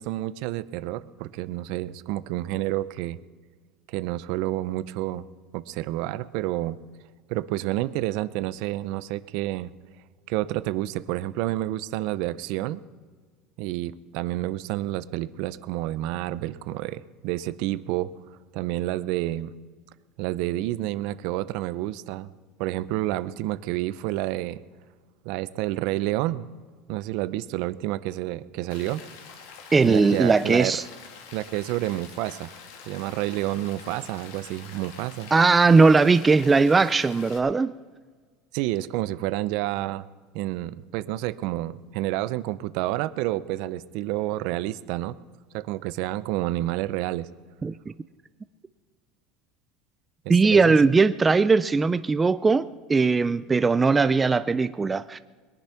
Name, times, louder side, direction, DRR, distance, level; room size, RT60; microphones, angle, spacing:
voice 1, 0.0-3.2 3.9-5.3 5.5-6.8 7.3-9.7 10.3-12.8 13.6-18.1 18.5-19.5 20.2-22.3 22.6-24.6 25.2-26.4 26.9-29.0 29.8-30.8 31.3-32.5 32.9-35.3 38.5-40.1 40.3-45.2 45.5-47.3 50.2-50.8, right 16 dB, 60° right, 0.6 m, -29 dB
Rain, 28.7-37.4, left 6 dB, 85° left, 2.4 m, -46 dB
voice 2, 29.7-30.8 35.3-37.7 47.6-47.7 50.3-55.2, right 4 dB, 15° right, 0.3 m, -19 dB
21.5 x 10.5 x 5.8 m
cardioid pair, 155°, 0 cm